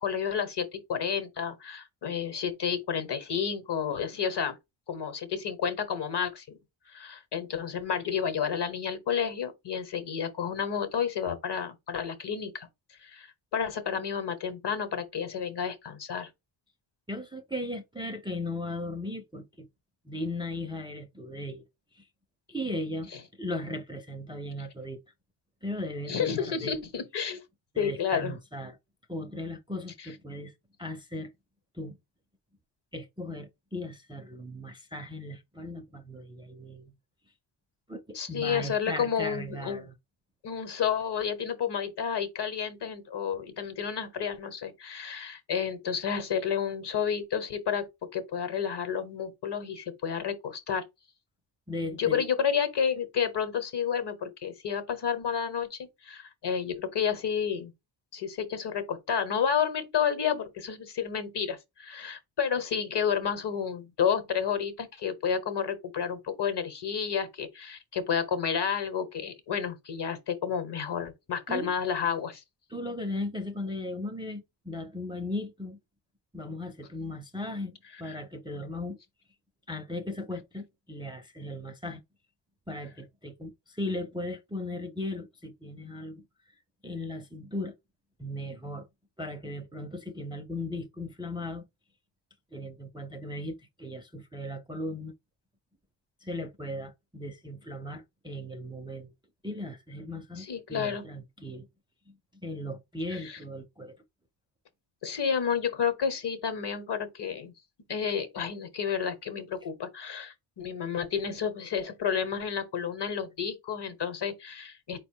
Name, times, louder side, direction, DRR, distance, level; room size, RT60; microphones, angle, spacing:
voice 1, 0.0-4.6 4.9-6.6 6.9-12.7 13.0-16.3 26.1-27.4 27.8-28.4 38.1-39.9 40.4-47.9 48.1-50.8 52.0-57.7 58.1-72.4 100.4-101.0 103.1-103.4 105.0-107.5 107.9-115.0, left 7 dB, 60° left, 1.1 m, -31 dB
voice 2, 17.1-19.7 20.1-21.6 21.9-22.1 22.5-23.1 23.4-25.0 25.6-26.8 27.7-28.8 29.1-30.5 30.8-31.3 31.7-32.0 32.9-36.9 37.9-39.9 51.7-52.2 71.5-71.7 72.7-75.8 76.3-79.0 79.7-82.0 82.7-86.2 86.8-87.7 88.2-88.9 89.2-91.7 92.5-95.1 96.2-99.1 99.4-101.7 102.1-102.2 102.4-103.9, left 1 dB, 10° right, 0.4 m, -37 dB
4.6 x 2.2 x 4.4 m
wide cardioid pair, 155°, 46 cm